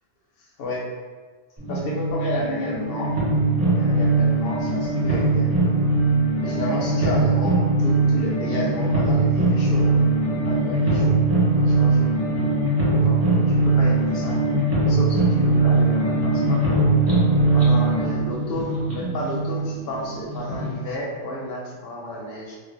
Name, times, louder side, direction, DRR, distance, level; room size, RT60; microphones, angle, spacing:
voice 1, 0.6-0.9 1.7-3.1 3.7-5.8 6.4-10.1 10.4-11.2 11.6-12.1 13.0-14.4 14.9-16.9 17.5-22.6, left 1 dB, 65° left, -2 dB, 0.7 m, -32 dB
sound 1, 1.6-20.7, right 2 dB, 15° right, 0.8 m, -21 dB
2.1 x 2.0 x 3.0 m, 1.4 s
omnidirectional pair, 1.2 m